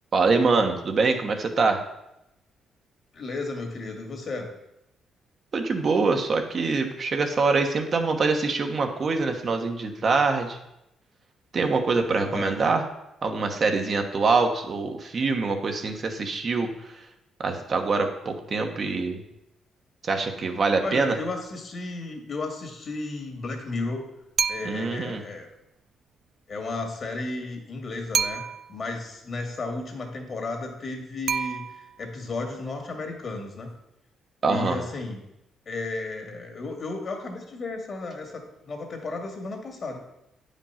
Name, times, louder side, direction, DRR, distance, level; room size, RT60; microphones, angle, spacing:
voice 1, 0.1-1.8 5.5-10.6 11.5-12.9 13.2-16.7 17.4-19.2 20.0-21.2 24.6-25.2 34.4-34.8, right 4 dB, 45° right, 4 dB, 1.2 m, -24 dB
voice 2, 3.1-4.5 12.0-12.7 20.8-24.0 24.5-25.5 26.5-28.4 28.7-33.7 34.4-35.2 35.7-40.0, left 3 dB, 45° left, 3 dB, 2.1 m, -34 dB
sound 1, 24.4-25.0 28.1-28.8 31.3-32.1, right 7 dB, 60° right, 0.4 m, -28 dB
8.9 x 5.2 x 5.7 m, 0.87 s
cardioid pair, 90°, 0 cm